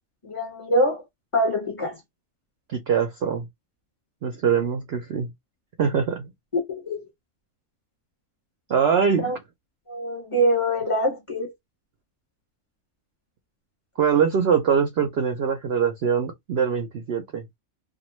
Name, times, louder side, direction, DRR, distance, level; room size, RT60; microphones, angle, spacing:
voice 1, 0.2-1.0 1.3-2.0 6.5-7.0 9.2-9.4 9.9-11.5, equal, 25° left, 1.0 m, -24 dB
voice 2, 2.7-3.4 4.2-5.3 5.8-6.3 8.7-9.4 14.0-17.4, right 7 dB, 65° right, 0.6 m, -23 dB
2.5 x 2.3 x 3.0 m
omnidirectional pair, 1.5 m